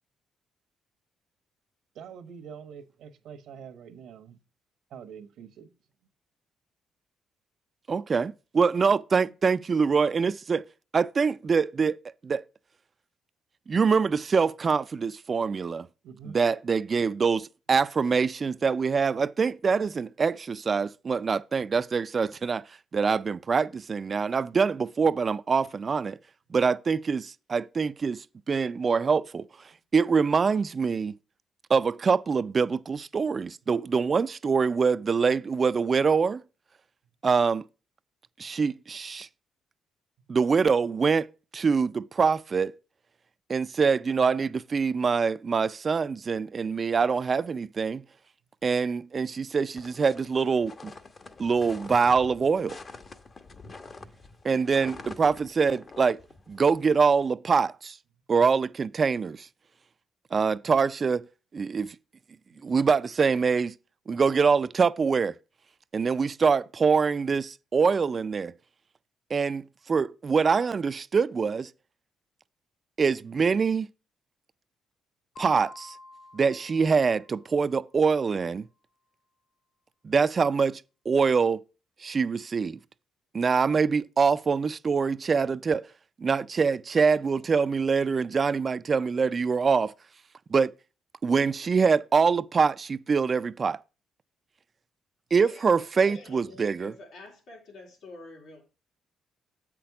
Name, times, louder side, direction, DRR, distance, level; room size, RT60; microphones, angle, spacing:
voice 1, 1.9-4.4 4.9-5.7 16.0-16.4 40.2-40.4 62.5-62.6, right 7 dB, 80° right, 1.1 m, -45 dB
voice 2, 7.9-10.6 10.9-12.0 12.2-12.4 13.7-15.9 16.2-22.6 22.9-26.2 26.5-29.5 29.9-31.1 31.7-36.4 37.2-37.6 38.4-39.3 40.3-41.3 41.5-42.7 43.5-48.0 48.6-50.9 51.4-52.8 54.4-56.2 56.5-58.0 58.3-59.5 60.3-61.3 61.5-62.0 62.6-63.7 64.1-65.3 65.9-68.5 69.3-71.7 73.0-73.9 75.4-76.0 76.3-78.7 80.0-80.8 81.1-81.6 82.0-82.8 83.3-85.8 86.2-89.9 90.5-90.7 91.2-93.8 95.3-96.9, right 5 dB, 40° right, 0.4 m, -24 dB
sound 1, 49.8-57.3, left 3 dB, 40° left, 0.9 m, -47 dB
sound 2, 75.4-77.9, left 2 dB, 65° left, 2.9 m, -48 dB
voice 3, 95.3-95.7 95.9-98.7, left 2 dB, 85° left, 3.1 m, -47 dB
7.7 x 6.0 x 4.7 m
cardioid pair, 90°, 0 cm